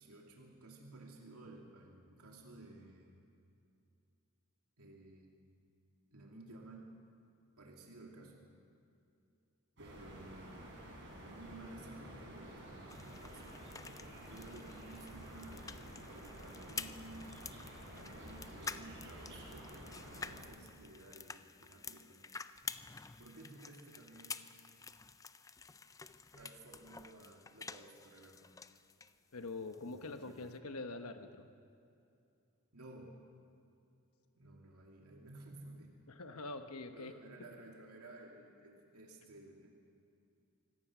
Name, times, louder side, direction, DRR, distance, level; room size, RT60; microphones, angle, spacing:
voice 1, 0.0-3.2 4.8-5.3 6.1-6.9 7.6-8.5 9.8-10.8 11.2-13.8 14.3-22.3 23.2-24.5 26.3-28.6 29.8-30.5 32.7-33.1 34.3-35.9 36.9-39.8, right 2 dB, 85° right, -1 dB, 2.6 m, -55 dB
sound 1, 9.8-20.4, right 1 dB, 55° right, 6.0 m, -51 dB
sound 2, 12.9-29.2 29.5-30.6, left 5 dB, 15° left, 0.4 m, -50 dB
voice 2, 29.3-31.5 36.1-37.1, left 3 dB, 80° left, 7 dB, 1.1 m, -44 dB
25.0 x 17.0 x 6.1 m, 2.6 s
head